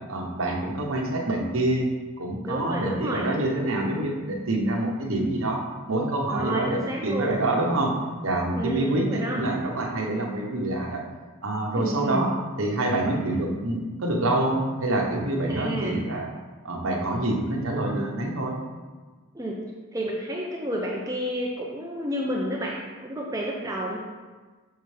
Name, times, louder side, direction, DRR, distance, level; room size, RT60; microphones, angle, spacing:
voice 1, 0.1-1.9 2.2-8.0 8.2-11.0 11.4-12.3 12.6-16.3 16.6-18.6, right 1 dB, 70° right, 0 dB, 1.0 m, -26 dB
voice 2, 2.4-3.3 6.3-7.4 8.6-9.4 11.8-12.3 15.5-15.9 19.3-19.6 19.9-24.0, equal, 15° right, -2 dB, 0.5 m, -30 dB
6.5 x 5.8 x 3.3 m, 1.3 s
head